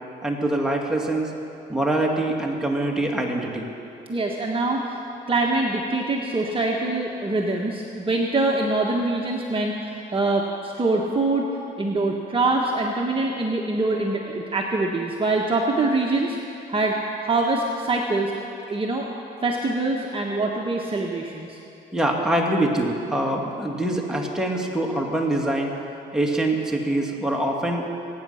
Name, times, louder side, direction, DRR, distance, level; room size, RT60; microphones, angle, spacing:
voice 1, 0.2-1.3 1.7-3.7 21.9-25.7 26.1-27.9, right 1 dB, 5° right, -1 dB, 2.4 m, -24 dB
voice 2, 4.1-5.0 5.3-11.5 11.8-16.4 16.7-17.0 17.2-18.3 18.7-19.1 19.4-21.6, right 2 dB, 25° right, -1 dB, 1.4 m, -24 dB
24.0 x 9.5 x 5.8 m, 2.8 s
cardioid pair, 90°, 20 cm